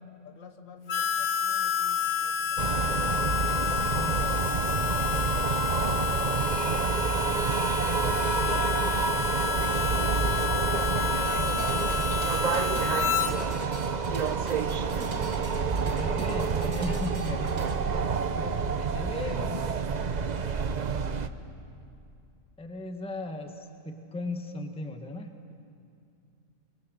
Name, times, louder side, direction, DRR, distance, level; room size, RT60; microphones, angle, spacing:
voice 1, 0.2-3.8 7.5-9.2 10.7-14.3 18.4-19.0 19.3-19.8 20.1-20.2, left 5 dB, 60° left, 6 dB, 1.6 m, -47 dB
Harmonica, 0.9-13.3, left 7 dB, 80° left, 1.6 m, -29 dB
sound 1, 2.6-21.3, right 5 dB, 45° right, 0.6 m, -28 dB
voice 2, 3.9-4.4 5.0-5.5 15.9-17.8 18.3-18.5 18.9-19.6 20.3-20.5 22.6-25.5, left 2 dB, 5° left, 5 dB, 1.1 m, -37 dB
sound 2, 11.2-17.8, right 2 dB, 85° right, 2.6 m, -43 dB
25.0 x 22.5 x 6.5 m, 2.5 s
omnidirectional pair, 1.5 m